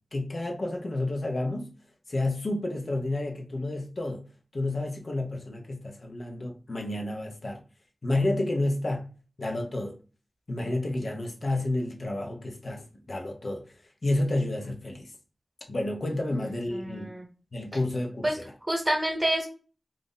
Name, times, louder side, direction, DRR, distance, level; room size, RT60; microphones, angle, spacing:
voice 1, 0.1-1.7 2.1-4.3 4.5-7.6 8.0-9.1 9.4-10.0 10.5-13.7 14.0-15.1 15.7-17.1 17.5-18.5, left 2 dB, 65° left, 0.7 m, -30 dB
voice 2, 16.3-17.2 18.2-18.4 18.7-19.5, right 1 dB, 30° right, 1.0 m, -28 dB
2.5 x 2.0 x 3.8 m
wide cardioid pair, 60°, 0 cm